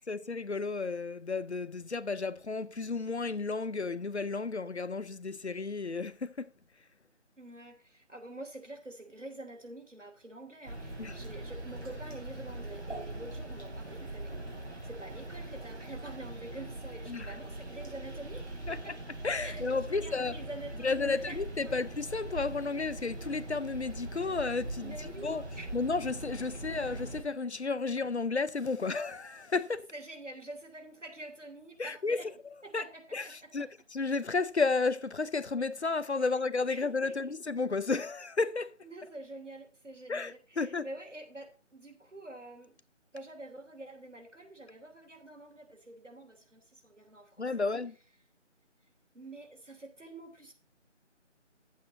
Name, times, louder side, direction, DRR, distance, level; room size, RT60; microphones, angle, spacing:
voice 1, 0.1-6.5 11.0-11.1 17.1-17.3 18.7-18.9 19.2-20.3 20.8-25.4 25.7-29.9 31.8-32.2 32.7-38.7 40.1-40.9 47.4-48.0, left 4 dB, 65° left, 0.7 m, -32 dB
voice 2, 7.4-19.0 19.4-21.4 21.7-21.8 24.8-25.7 26.5-26.6 29.9-32.3 32.6-33.7 36.3-37.3 38.8-42.7 43.1-47.7 49.1-50.5, right 2 dB, 75° right, 3.5 m, -47 dB
LLuvia gotas terraza, 10.6-27.2, right 1 dB, 60° right, 3.3 m, -42 dB
11.0 x 8.4 x 4.1 m
figure-of-eight pair, 165°, 37 cm